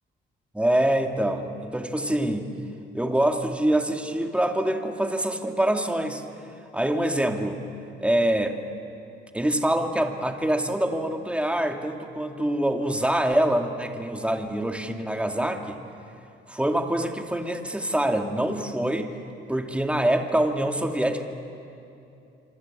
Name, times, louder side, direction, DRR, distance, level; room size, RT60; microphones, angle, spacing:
voice 1, 0.5-2.5 2.9-6.2 6.7-7.6 8.0-8.6 9.3-15.8 16.5-19.1 19.5-21.2, right 1 dB, 5° right, 4 dB, 2.4 m, -25 dB
26.5 x 26.0 x 8.6 m, 2.7 s
cardioid pair, 90°, 20 cm